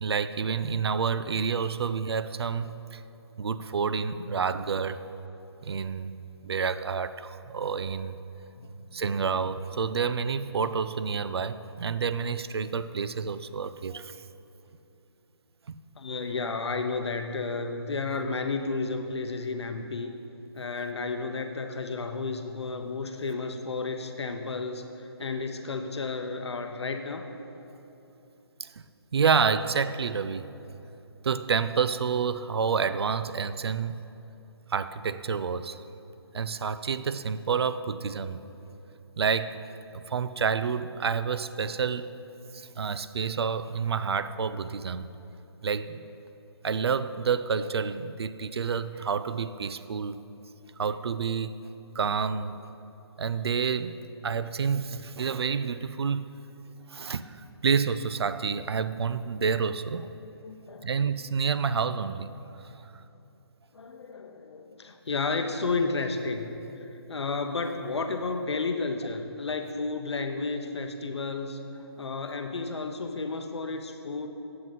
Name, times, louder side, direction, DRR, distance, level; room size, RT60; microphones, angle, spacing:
voice 1, 0.0-3.0 3.4-5.1 5.6-6.2 6.4-8.2 8.9-14.2 15.7-15.8 28.6-28.8 29.1-30.5 31.2-34.0 34.7-35.8 36.3-38.4 39.2-39.6 39.9-42.1 42.5-45.1 45.6-46.0 46.6-50.2 50.8-51.5 52.0-52.5 53.2-54.0 54.2-56.2 56.9-60.1 60.8-62.3, right 6 dB, 70° right, 13 dB, 0.4 m, -29 dB
voice 2, 16.0-20.1 20.5-27.2 60.0-60.9 63.7-74.3, left 3 dB, 80° left, 6 dB, 0.7 m, -32 dB
9.1 x 7.6 x 4.0 m, 3.0 s
hypercardioid pair, 170°, 14 cm